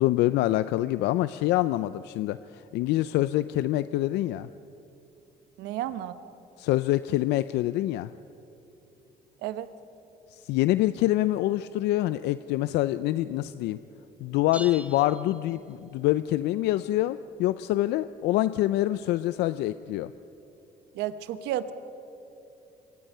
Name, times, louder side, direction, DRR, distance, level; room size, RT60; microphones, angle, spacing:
voice 1, 0.0-4.5 6.6-8.1 10.3-13.8 14.2-20.1, left 15 dB, 85° left, 14 dB, 0.5 m, -26 dB
voice 2, 5.6-6.3 9.4-9.7 20.9-21.7, right 12 dB, 90° right, 12 dB, 1.1 m, -32 dB
sound 1, 14.5-16.1, right 1 dB, 10° right, 1.3 m, -44 dB
26.0 x 24.0 x 5.6 m, 2.9 s
cardioid pair, 110°, 17 cm